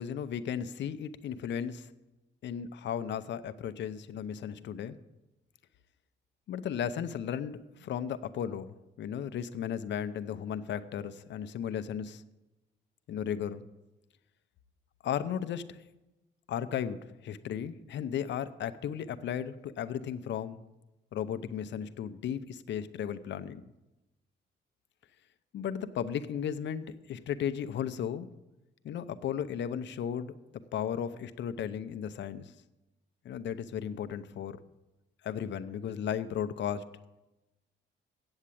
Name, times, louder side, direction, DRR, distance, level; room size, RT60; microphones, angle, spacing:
voice 1, 0.0-1.9 2.4-5.0 6.5-12.2 13.1-13.6 15.0-15.8 16.5-20.6 21.1-23.6 25.5-28.3 28.8-30.3 30.7-32.5 33.2-34.6 35.2-36.9, left 8 dB, 65° left, 12 dB, 0.7 m, -35 dB
8.8 x 7.3 x 8.4 m, 1.0 s
cardioid pair, 90°, 20 cm